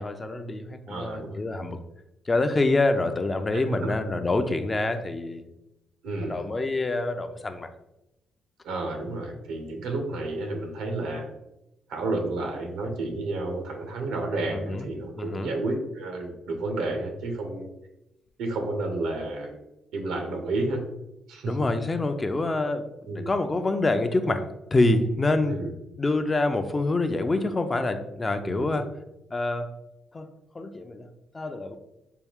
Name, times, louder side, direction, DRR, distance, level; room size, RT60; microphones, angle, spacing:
voice 1, 0.0-1.8 2.3-5.4 6.2-7.7 14.7-14.9 15.2-15.5 21.4-24.5 24.7-25.6 26.0-28.9 29.3-29.7 30.1-30.3 30.5-31.1 31.3-31.8, left 2 dB, 25° left, 8 dB, 0.4 m, -26 dB
voice 2, 0.9-1.4 3.5-3.9 6.0-6.5 8.6-11.3 11.9-17.7 18.4-19.6 19.9-20.9 21.3-21.7 23.1-23.3 25.4-25.7 28.4-28.8, right 2 dB, 90° right, 3 dB, 0.8 m, -31 dB
4.5 x 2.3 x 3.5 m, 0.90 s
cardioid pair, 90°, 0 cm